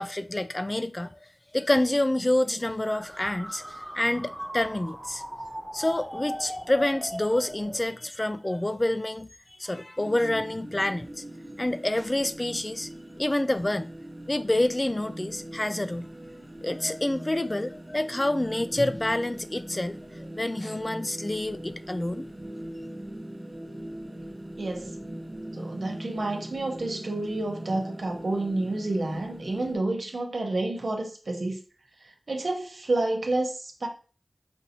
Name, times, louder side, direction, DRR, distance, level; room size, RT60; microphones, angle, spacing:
voice 1, 0.0-5.2 5.7-9.3 9.6-11.2 11.6-12.9 13.2-13.9 14.3-16.1 16.6-22.3, left 1 dB, 30° left, 0.3 m, -28 dB
sound 1, 2.9-7.9, equal, 15° right, 1.0 m, -39 dB
sound 2, 10.0-29.7, right 1 dB, 50° right, 1.0 m, -41 dB
voice 2, 24.6-25.0 25.5-31.6 32.0-33.9, right 2 dB, 85° right, 0.8 m, -29 dB
5.4 x 2.7 x 2.7 m
wide cardioid pair, 55°, 0 cm